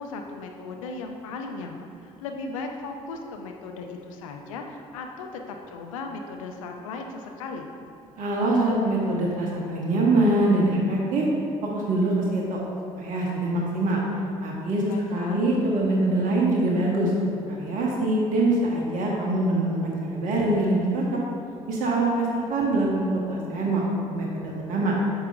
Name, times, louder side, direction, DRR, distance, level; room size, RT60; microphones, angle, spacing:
voice 1, 0.0-7.7 14.9-15.4, left 3 dB, 70° left, 3 dB, 0.6 m, -37 dB
voice 2, 8.2-11.2 11.7-12.6 13.0-14.0 14.4-21.0 21.7-23.8 24.1-25.0, right 2 dB, 50° right, -2 dB, 1.1 m, -24 dB
8.7 x 6.6 x 2.5 m, 2.8 s
figure-of-eight pair, 50°, 18 cm